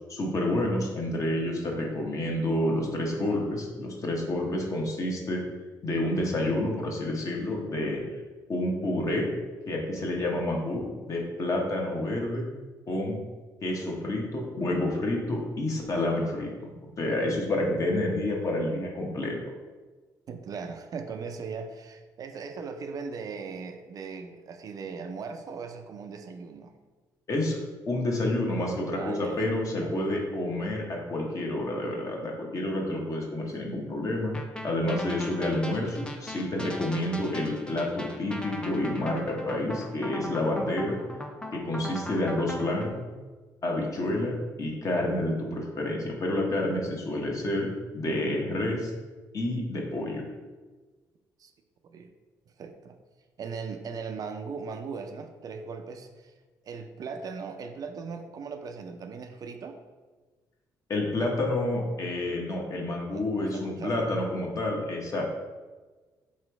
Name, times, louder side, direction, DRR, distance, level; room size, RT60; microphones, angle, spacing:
voice 1, 0.1-5.4 5.8-8.0 8.5-9.3 9.7-12.4 12.9-13.2 13.6-16.5 17.0-19.4 27.3-27.6 27.9-34.3 34.6-41.0 41.5-43.0 43.6-47.7 47.9-48.9 49.3-50.2 60.9-65.2, left 1 dB, 45° left, 0 dB, 1.0 m, -29 dB
voice 2, 20.3-26.7 28.9-29.9 33.4-33.5 51.4-51.5 51.8-52.1 52.6-53.0 53.4-56.3 56.6-59.8 63.1-64.0, right 5 dB, 50° right, 6 dB, 0.4 m, -39 dB
sound 1, 34.3-42.9, left 1 dB, 10° left, 0.5 m, -39 dB
3.1 x 3.0 x 4.6 m, 1.3 s
cardioid pair, 80°, 8 cm